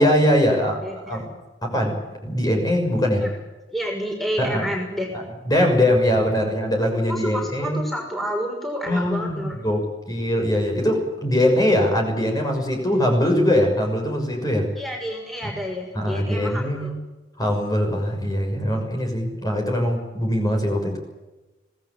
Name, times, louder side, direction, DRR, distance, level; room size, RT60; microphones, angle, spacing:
voice 1, 0.0-0.8 1.1-1.3 1.6-1.9 2.2-3.3 4.4-4.7 5.5-7.8 8.9-14.7 15.4-15.5 15.9-16.9 17.4-21.0, left 1 dB, 20° left, 2 dB, 6.5 m, -21 dB
voice 2, 0.8-1.4 3.2-3.4 3.7-5.3 7.1-9.6 14.8-16.9, equal, ahead, 0 dB, 6.1 m, -30 dB
26.0 x 19.0 x 8.7 m, 1.1 s
head